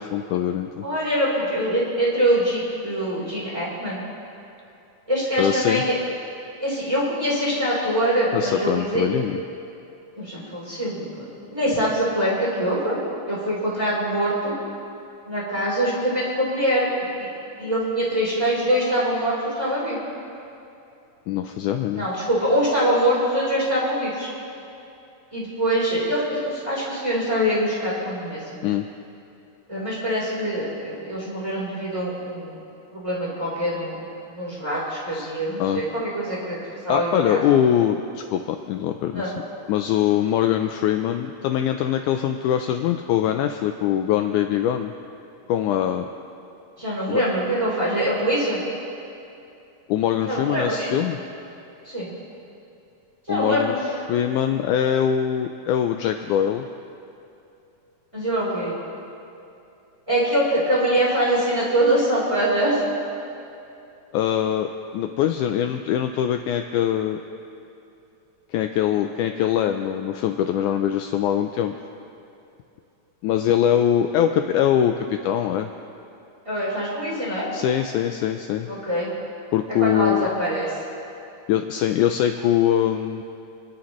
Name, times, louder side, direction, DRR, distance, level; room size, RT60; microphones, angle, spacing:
voice 1, 0.0-0.8 5.4-5.8 8.3-9.4 21.3-22.1 28.6-28.9 35.1-35.3 35.6-35.8 36.9-39.3 39.7-44.9 45.5-46.1 47.1-47.2 49.9-51.2 53.3-56.7 64.1-67.2 68.5-71.7 73.2-75.7 77.5-78.7 79.5-80.3 81.5-83.2, left 10 dB, 80° left, 6 dB, 2.0 m, -23 dB
voice 2, 0.8-4.0 5.1-5.9 6.6-9.0 10.2-13.0 13.3-14.6 15.3-17.3 17.6-20.0 21.9-24.3 25.3-28.4 29.7-32.6 32.9-36.6 36.8-37.4 39.1-39.3 46.8-48.6 50.3-50.9 51.8-52.1 53.3-53.8 58.1-58.8 60.1-62.8 76.5-77.5 78.7-79.1 79.8-80.7, equal, 10° right, -7 dB, 3.5 m, -24 dB
28.0 x 11.5 x 3.1 m, 2.7 s
omnidirectional pair, 3.7 m